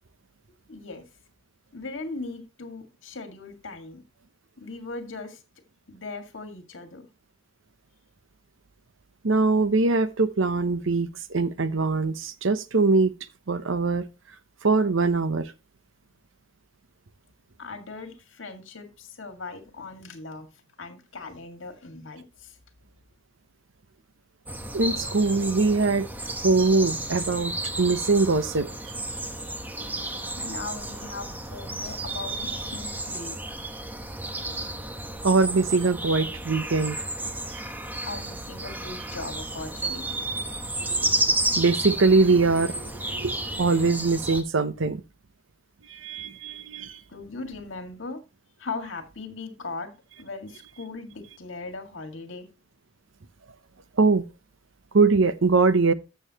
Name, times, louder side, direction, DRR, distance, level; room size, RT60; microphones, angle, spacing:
voice 1, 0.7-1.0 1.7-4.0 4.6-5.4 5.9-7.1 17.6-20.5 20.8-22.6 30.4-33.6 38.1-40.2 47.1-48.2 48.6-49.9 50.2-52.5, left 3 dB, 70° left, 2.0 m, -39 dB
voice 2, 9.2-13.1 13.5-14.1 14.6-15.5 24.7-26.1 26.4-28.9 35.2-37.0 37.5-37.6 40.9-41.1 41.6-45.0 45.9-47.0 54.0-54.2 54.9-55.9, right 3 dB, 70° right, 0.8 m, -22 dB
sound 1, 24.5-44.4, right 2 dB, 10° right, 0.9 m, -32 dB
13.5 x 7.1 x 2.9 m
head